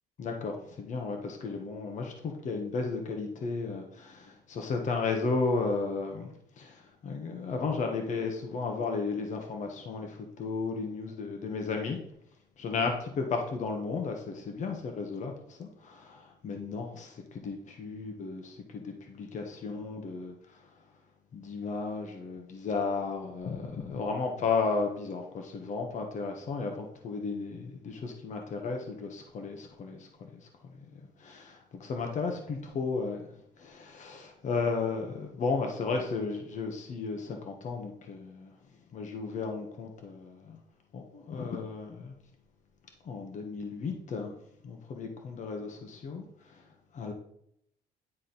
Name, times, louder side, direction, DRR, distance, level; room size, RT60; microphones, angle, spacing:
voice 1, 0.2-12.0 12.6-20.3 21.3-30.1 30.9-33.3 33.6-38.5 38.9-40.6 40.9-42.1 43.0-44.3 44.6-46.2 46.9-47.1, left 4 dB, 45° left, 3 dB, 1.2 m, -34 dB
10.0 x 4.1 x 4.0 m, 0.70 s
cardioid pair, 110°, 17 cm